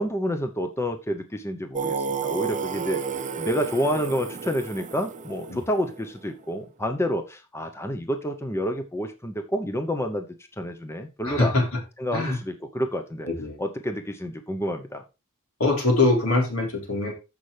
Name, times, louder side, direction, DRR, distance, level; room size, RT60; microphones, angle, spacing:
voice 1, 0.0-3.0 3.4-10.3 10.5-11.5 12.0-13.3 13.6-15.0, equal, 10° left, 6 dB, 0.9 m, -29 dB
Singing, 1.7-6.5, right 5 dB, 35° right, 0.8 m, -31 dB
voice 2, 11.3-11.8 12.1-12.4 13.2-13.6 15.6-17.1, left 2 dB, 75° left, 1 dB, 3.8 m, -23 dB
14.5 x 5.6 x 3.3 m, 0.28 s
head